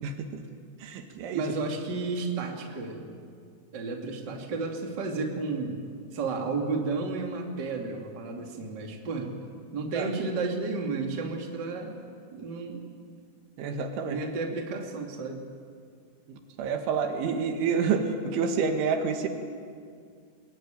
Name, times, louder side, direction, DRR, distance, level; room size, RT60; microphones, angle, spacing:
voice 1, 0.0-0.4 0.8-1.4 10.0-10.1 13.6-14.2 16.6-19.3, right 5 dB, 80° right, 5 dB, 4.2 m, -28 dB
voice 2, 1.3-3.2 3.7-5.8 6.1-9.3 9.7-12.0 12.3-12.8 14.1-15.4, right 3 dB, 30° right, 1 dB, 2.3 m, -32 dB
23.0 x 21.0 x 9.1 m, 2.2 s
omnidirectional pair, 5.4 m